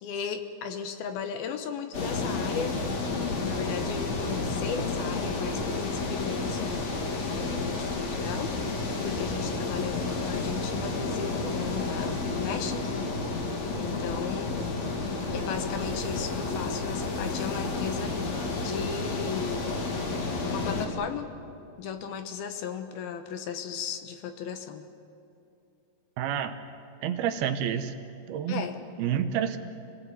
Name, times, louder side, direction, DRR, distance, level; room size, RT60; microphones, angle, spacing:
voice 1, 0.0-2.8 3.4-6.8 7.3-8.5 9.0-13.0 13.7-14.6 15.3-18.3 18.5-19.9 20.4-21.3 21.8-24.9 28.5-28.8, left 7 dB, 75° left, 7 dB, 2.9 m, -36 dB
sound 1, 1.9-20.9, left 3 dB, 50° left, 3.0 m, -31 dB
voice 2, 26.2-26.6 27.0-27.9 28.3-28.7 29.0-29.6, right 9 dB, 80° right, 9 dB, 2.9 m, -28 dB
28.0 x 18.5 x 8.4 m, 2.7 s
omnidirectional pair, 4.6 m